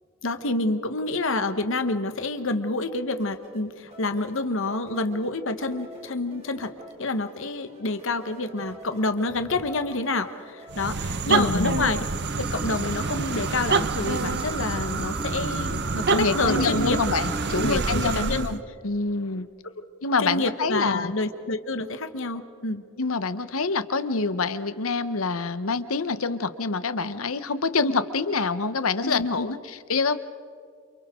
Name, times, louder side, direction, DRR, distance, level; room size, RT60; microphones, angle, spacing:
voice 1, 0.2-6.7 7.0-12.0 12.4-17.0 17.6-18.5 20.2-22.8 29.0-29.5, left 2 dB, 65° left, 9 dB, 1.3 m, -28 dB
sound 1, 3.2-10.9, equal, 30° right, 3.9 m, -47 dB
sound 2, 10.7-18.6, right 4 dB, 55° right, 0.8 m, -27 dB
voice 2, 11.3-11.8 16.1-18.6 18.8-19.5 20.0-21.1 23.0-30.2, left 4 dB, 85° left, 12 dB, 1.1 m, -26 dB
Water / Sink (filling or washing), 12.1-17.8, right 1 dB, 5° right, 0.6 m, -38 dB
29.0 x 28.0 x 3.8 m, 2.3 s
head